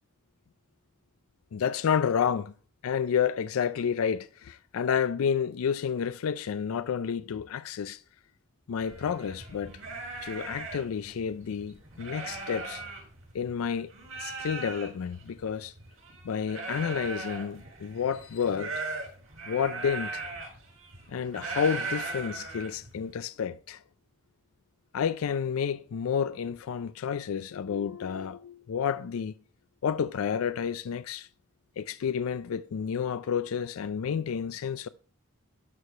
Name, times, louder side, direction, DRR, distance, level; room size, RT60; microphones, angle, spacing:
voice 1, 1.5-2.5 2.8-8.0 8.7-9.8 10.2-12.8 13.3-13.9 14.2-15.7 16.2-18.7 19.5-20.2 21.1-23.8 24.9-29.3 29.8-31.3 31.8-34.9, left 7 dB, 90° left, 0.4 m, -30 dB
sound 1, 8.8-13.6 13.9-23.1, right 3 dB, 80° right, 6.1 m, -39 dB
12.5 x 4.8 x 5.4 m
head